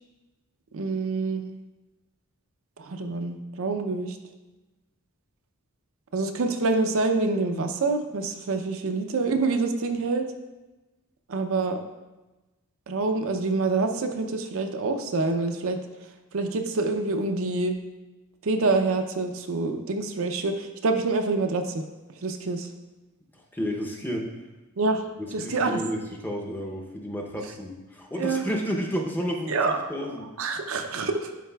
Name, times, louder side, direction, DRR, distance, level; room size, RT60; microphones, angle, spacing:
voice 1, 0.7-1.4 2.8-4.2 6.1-10.3 11.3-11.8 12.9-15.8 16.3-17.8 18.4-21.8 22.2-22.7 24.8-25.0 25.3-25.8 28.2-28.4 29.5-29.8 30.4-31.3, right 3 dB, 70° right, 6 dB, 0.5 m, -26 dB
voice 2, 23.5-24.3 25.4-30.3, equal, 10° left, -1 dB, 0.7 m, -31 dB
11.0 x 4.1 x 2.3 m, 1.1 s
head